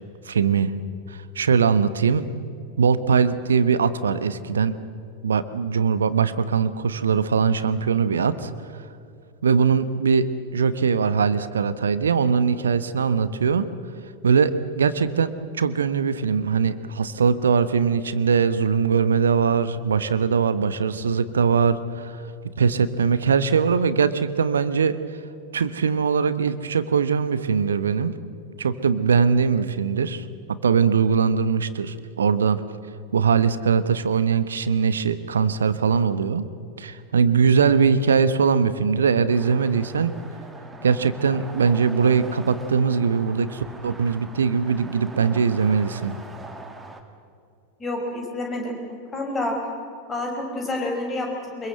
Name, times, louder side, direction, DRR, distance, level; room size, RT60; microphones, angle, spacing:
voice 1, 0.3-0.7 1.1-2.3 2.8-4.8 5.2-8.5 9.4-13.7 14.2-15.3 15.6-22.2 22.6-25.0 25.5-28.2 28.6-32.6 33.1-36.5 36.8-40.1 40.8-46.1, right 6 dB, 70° right, 14 dB, 1.1 m, -21 dB
sound 1, 39.3-47.0, right 2 dB, 10° right, 2.2 m, -42 dB
voice 2, 47.8-48.8 49.1-49.6 50.1-51.7, left 2 dB, 20° left, 2 dB, 5.9 m, -28 dB
24.5 x 22.5 x 7.9 m, 2.4 s
figure-of-eight pair, 90°, 0 cm